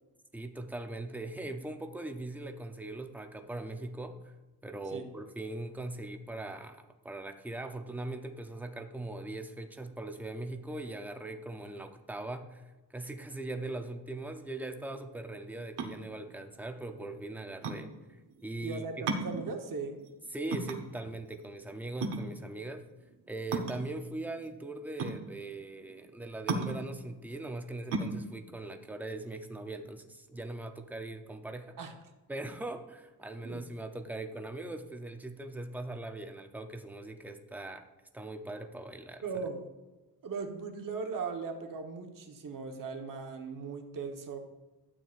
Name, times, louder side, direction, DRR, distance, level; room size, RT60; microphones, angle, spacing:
voice 1, 0.3-4.3 4.6-12.6 12.9-19.1 20.3-22.9 23.3-31.8 32.3-37.9 38.1-39.2, right 2 dB, 5° right, 6 dB, 0.5 m, -40 dB
sound 1, 15.7-30.0, right 3 dB, 85° right, 1.1 m, -37 dB
voice 2, 18.6-20.0 31.8-31.9 33.4-33.7 39.2-39.6 40.2-44.4, right 4 dB, 50° right, 4 dB, 1.1 m, -38 dB
12.5 x 8.8 x 2.5 m, 1.1 s
wide cardioid pair, 165°, 41 cm